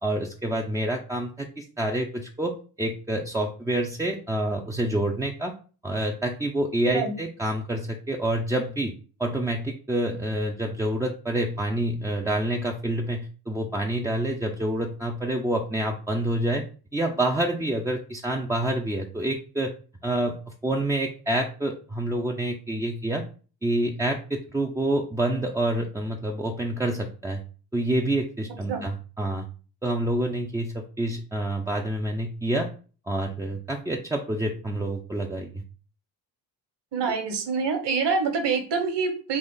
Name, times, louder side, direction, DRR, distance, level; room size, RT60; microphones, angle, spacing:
voice 1, 0.0-5.5 5.8-8.9 9.2-16.6 16.9-19.7 20.0-20.4 20.6-23.2 23.6-27.4 27.7-29.5 29.8-32.7 33.1-35.6, right 1 dB, 10° right, 0 dB, 0.3 m, -27 dB
voice 2, 36.9-39.4, right 5 dB, 55° right, 6 dB, 1.2 m, -26 dB
4.0 x 2.5 x 3.7 m, 0.38 s
supercardioid pair, 60°, 50 cm